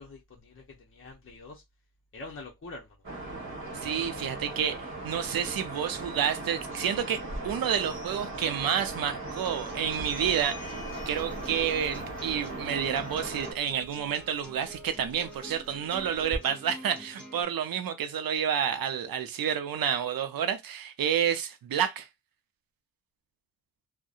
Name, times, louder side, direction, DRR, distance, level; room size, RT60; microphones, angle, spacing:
voice 1, 0.0-1.6 2.1-2.9, left 2 dB, 35° left, 0.7 m, -45 dB
sound 1, 3.0-13.5, right 2 dB, 35° right, 1.1 m, -38 dB
voice 2, 3.8-22.1, right 8 dB, 75° right, 0.6 m, -30 dB
Sliding door, 7.2-16.4, left 1 dB, 20° right, 1.4 m, -46 dB
sound 2, 9.4-17.4, right 1 dB, 5° left, 1.4 m, -47 dB
2.7 x 2.1 x 2.4 m
wide cardioid pair, 100°, 36 cm